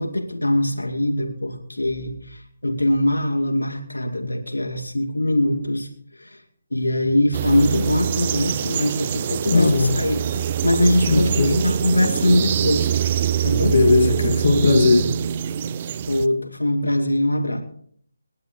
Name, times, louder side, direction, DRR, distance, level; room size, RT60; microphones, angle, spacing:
voice 1, 0.0-5.9 6.2-6.4 6.7-12.9 13.4-13.8 16.1-17.6, left 1 dB, 85° left, 3 dB, 2.4 m, -22 dB
sound 1, 7.3-16.3, right 9 dB, 30° right, 0.5 m, -24 dB
voice 2, 9.5-9.9 11.1-11.6 13.6-15.1, left 3 dB, 55° left, 2 dB, 2.3 m, -18 dB
30.0 x 11.5 x 3.2 m, 0.63 s
figure-of-eight pair, 155°, 0 cm